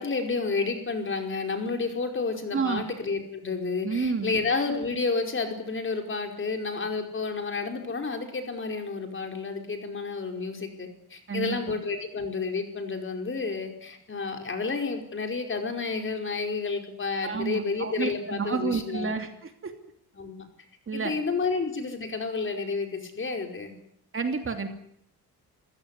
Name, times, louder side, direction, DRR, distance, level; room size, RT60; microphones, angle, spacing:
voice 1, 0.0-19.1 20.2-20.5 20.9-23.7, left 4 dB, 30° left, 4 dB, 5.1 m, -30 dB
voice 2, 2.5-2.8 3.8-4.3 11.3-11.6 17.2-19.7 20.9-21.1 24.1-24.7, right 5 dB, 30° right, 6 dB, 3.0 m, -30 dB
27.5 x 16.5 x 9.7 m, 0.71 s
cardioid pair, 125°, 39 cm